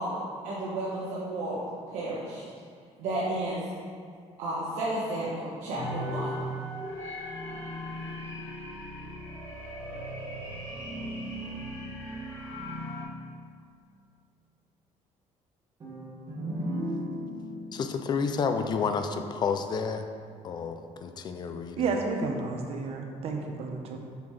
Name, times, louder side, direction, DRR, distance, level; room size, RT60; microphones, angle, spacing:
voice 1, 0.0-1.6 1.9-2.4 3.0-3.6 4.4-6.3, right 1 dB, 80° right, -8 dB, 1.3 m, -32 dB
sound 1, 5.8-13.0, equal, 20° left, 1.8 m, -37 dB
sound 2, 15.8-19.5, equal, 30° right, 1.5 m, -37 dB
voice 2, 17.7-20.1 20.4-22.0, left 5 dB, 35° left, 7 dB, 0.4 m, -30 dB
voice 3, 21.8-24.0, right 4 dB, 55° right, 3 dB, 0.8 m, -31 dB
7.1 x 5.9 x 3.2 m, 2.2 s
cardioid pair, 160°, 12 cm